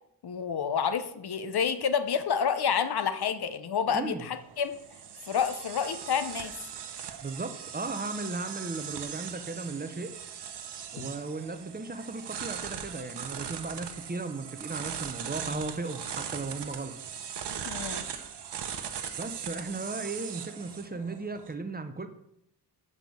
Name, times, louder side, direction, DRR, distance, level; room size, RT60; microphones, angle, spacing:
voice 1, 0.2-4.8 5.3-6.5 11.0-11.1 17.6-18.1, left 7 dB, 65° left, 11 dB, 0.9 m, -29 dB
voice 2, 3.9-4.3 7.2-10.1 10.9-17.0 19.2-22.1, right 3 dB, 25° right, 8 dB, 0.7 m, -36 dB
sound 1, 4.3-21.5, right 8 dB, 75° right, 1.0 m, -39 dB
8.2 x 5.3 x 7.6 m, 0.76 s
wide cardioid pair, 165°, 41 cm